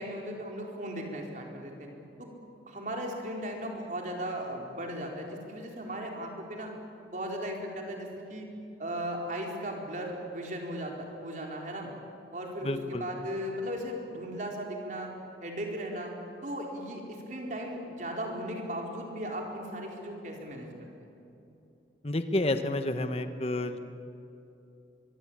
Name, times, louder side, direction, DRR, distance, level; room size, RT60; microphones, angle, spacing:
voice 1, 0.0-1.9 2.2-2.3 2.7-6.7 7.1-8.5 8.8-11.9 12.3-15.1 15.4-16.1 16.4-20.7, equal, 45° right, 0 dB, 4.3 m, -37 dB
voice 2, 12.6-13.1 22.0-23.8, left 1 dB, 35° left, 8 dB, 1.2 m, -30 dB
24.0 x 23.0 x 8.7 m, 2.9 s
head